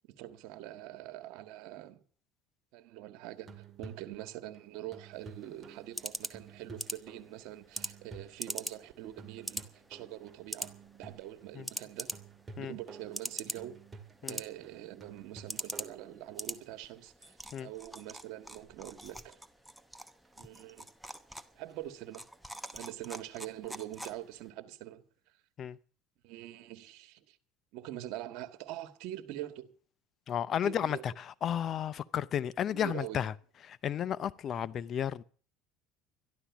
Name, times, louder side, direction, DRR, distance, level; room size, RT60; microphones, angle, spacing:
voice 1, 0.1-2.0 2.7-12.1 12.6-13.8 14.2-19.4 20.4-20.9 21.5-22.2 22.7-25.0 26.2-27.4 27.7-29.7 30.6-31.0 32.7-33.2, right 14 dB, 70° right, 1.7 m, -44 dB
sound 1, 3.3-16.7 20.2-20.3, right 4 dB, 25° right, 2.1 m, -52 dB
sound 2, 5.1-24.5, right 1 dB, ahead, 0.9 m, -44 dB
voice 2, 30.3-33.3 33.6-35.2, left 9 dB, 40° left, 0.6 m, -33 dB
13.0 x 11.5 x 7.2 m
supercardioid pair, 110°, 0 cm